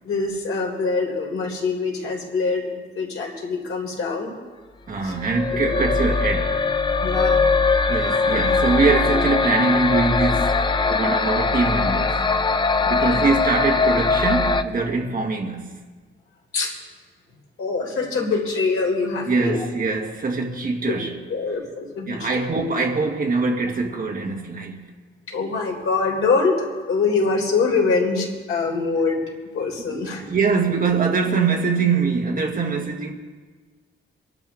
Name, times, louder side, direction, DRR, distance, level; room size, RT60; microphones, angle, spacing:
voice 1, 0.0-2.7 3.0-4.3 5.0-5.1 5.7-5.8 7.0-7.4 12.8-13.3 16.5-16.7 17.6-19.6 20.9-21.0 21.3-22.3 25.3-26.5 26.9-29.2 29.5-30.2, left 4 dB, 80° left, 3.6 m, -24 dB
voice 2, 4.9-6.6 7.9-10.6 10.9-12.2 12.8-15.7 19.3-21.2 22.0-24.9 29.9-33.1, right 4 dB, 40° right, 1.8 m, -23 dB
sound 1, 5.1-14.6, left 4 dB, 20° left, 0.5 m, -21 dB
26.0 x 12.0 x 3.6 m
wide cardioid pair, 175°, 21 cm